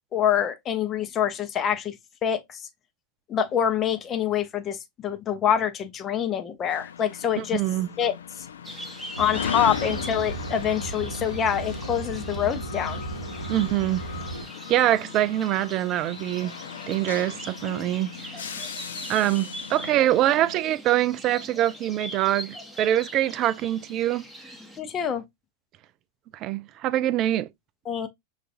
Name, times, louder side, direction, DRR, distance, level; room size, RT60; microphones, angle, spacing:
voice 1, 0.1-1.9 2.2-2.6 3.3-7.6 8.0-8.1 9.2-13.0 24.8-25.2 27.9-28.1, left 9 dB, 25° left, 0.6 m, -26 dB
sound 1, 6.7-20.6, left 7 dB, 65° left, 0.4 m, -38 dB
voice 2, 7.4-7.9 13.5-14.0 14.7-16.5 16.9-18.1 19.1-24.2 26.3-27.5, right 13 dB, 35° right, 0.3 m, -24 dB
sound 2, 8.6-24.8, equal, 5° right, 0.9 m, -42 dB
sound 3, 9.1-14.5, right 2 dB, 90° left, 1.0 m, -35 dB
5.7 x 2.4 x 2.5 m
figure-of-eight pair, 90°, 0 cm